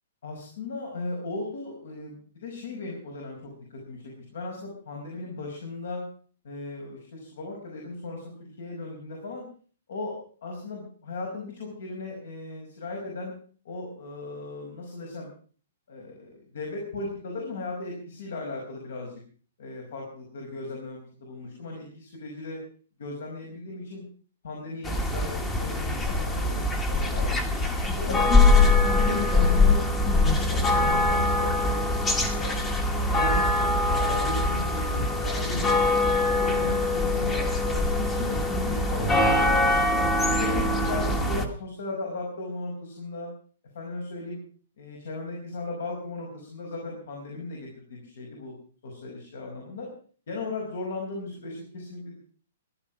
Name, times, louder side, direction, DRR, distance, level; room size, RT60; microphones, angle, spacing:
voice 1, 0.2-6.0 6.4-9.4 9.9-13.3 13.6-15.3 15.9-19.2 19.6-22.6 23.0-24.0 24.4-27.3 27.9-32.0 32.3-36.0 36.3-37.8 38.1-39.8 40.3-43.3 43.7-44.4 44.8-48.5 48.8-49.9 50.3-52.2, left 2 dB, 70° left, 0 dB, 5.2 m, -37 dB
sound 1, 24.8-41.5, left 2 dB, 10° left, 1.4 m, -23 dB
15.5 x 11.5 x 6.1 m, 0.43 s
hypercardioid pair, 170°, 0 cm